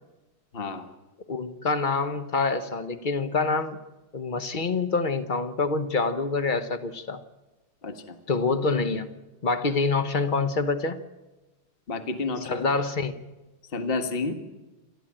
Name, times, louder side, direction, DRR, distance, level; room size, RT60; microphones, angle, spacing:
voice 1, 0.5-0.9 7.8-8.2 11.9-12.7 13.7-14.3, left 3 dB, 30° left, 8 dB, 1.6 m, -30 dB
voice 2, 1.3-3.8 4.1-7.2 8.3-9.1 9.4-11.0 12.4-13.2, left 4 dB, 45° left, 11 dB, 0.6 m, -26 dB
28.0 x 12.5 x 8.8 m, 1.1 s
omnidirectional pair, 2.3 m